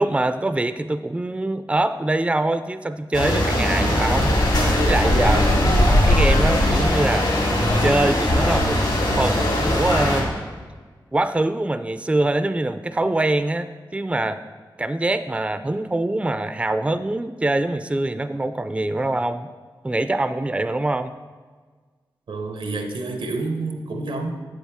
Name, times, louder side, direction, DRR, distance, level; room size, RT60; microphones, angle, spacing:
voice 1, 0.0-4.4 4.8-7.3 7.6-8.8 9.2-10.3 11.1-14.4 14.8-19.5 19.8-21.1, right 2 dB, 15° right, 11 dB, 0.4 m, -24 dB
sound 1, 3.1-10.2, left 1 dB, 70° left, 2.5 m, -19 dB
voice 2, 22.3-24.3, right 3 dB, 90° right, 4 dB, 0.9 m, -28 dB
8.0 x 7.2 x 3.6 m, 1.5 s
cardioid pair, 45°, 9 cm